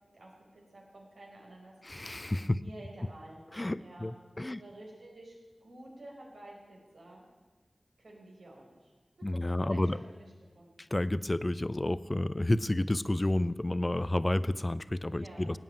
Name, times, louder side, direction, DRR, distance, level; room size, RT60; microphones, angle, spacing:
voice 1, 0.1-2.2 2.4-3.4 3.8-4.1 4.5-7.2 8.0-8.9 9.3-10.2 10.5-10.7 15.1-15.6, right 1 dB, 85° right, -2 dB, 4.8 m, -50 dB
voice 2, 1.8-2.6 3.5-4.6 9.2-10.0 10.8-15.6, left 1 dB, 25° left, 16 dB, 0.5 m, -30 dB
17.0 x 9.3 x 8.9 m, 1.3 s
wide cardioid pair, 85°, 0 cm